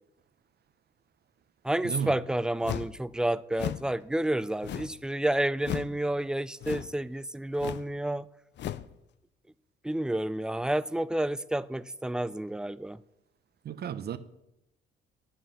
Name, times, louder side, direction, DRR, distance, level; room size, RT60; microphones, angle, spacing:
voice 1, 1.6-8.3 9.8-13.0, right 1 dB, 5° right, 0.3 m, -30 dB
sound 1, 2.6-3.0 3.5-3.9 4.6-5.0 5.6-6.0 6.6-7.0 7.6-7.9 8.6-8.9, left 11 dB, 65° left, 0.5 m, -36 dB
voice 2, 13.6-14.2, right 8 dB, 55° right, 0.7 m, -33 dB
10.0 x 7.7 x 5.7 m
cardioid pair, 90°, 20 cm